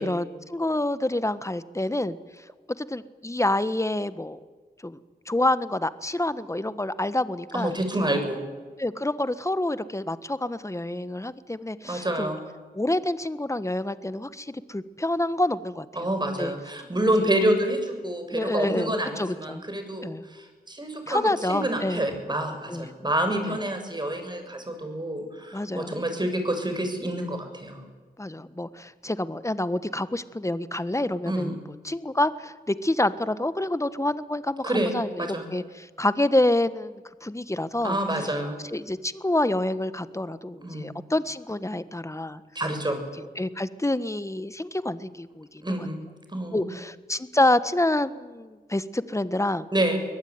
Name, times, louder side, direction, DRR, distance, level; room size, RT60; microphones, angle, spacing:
voice 1, 0.0-2.4 2.8-4.4 4.8-5.0 5.3-7.8 8.8-12.3 12.7-16.5 17.2-17.3 18.3-19.6 20.0-20.2 21.1-22.1 22.7-22.9 23.5-23.6 25.5-26.0 28.2-38.0 38.7-42.4 43.2-45.9 46.5-49.7, left 1 dB, 15° left, 13 dB, 1.5 m, -27 dB
voice 2, 7.5-8.4 11.8-12.4 16.0-27.8 31.3-31.5 34.6-34.9 35.2-35.5 37.8-38.6 40.6-40.9 42.5-43.0 45.6-46.0 46.3-46.7 49.7-50.0, right 1 dB, 25° right, 6 dB, 6.6 m, -28 dB
23.5 x 18.5 x 9.7 m, 1.4 s
cardioid pair, 50°, 17 cm